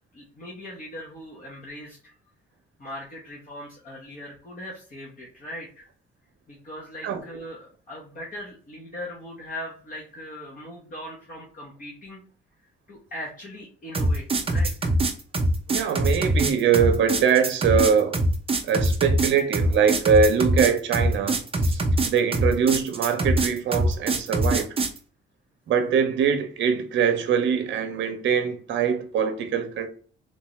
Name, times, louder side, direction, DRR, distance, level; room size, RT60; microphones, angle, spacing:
voice 1, 0.1-2.1 2.8-5.9 6.5-12.2 12.9-14.9, left 1 dB, 40° left, 1.2 m, -40 dB
sound 1, 13.9-25.0, right 1 dB, 30° right, 0.7 m, -23 dB
voice 2, 15.7-18.2 18.6-24.7 25.7-29.9, right 7 dB, 70° right, 0.7 m, -23 dB
3.7 x 2.6 x 3.1 m
cardioid pair, 90°, 20 cm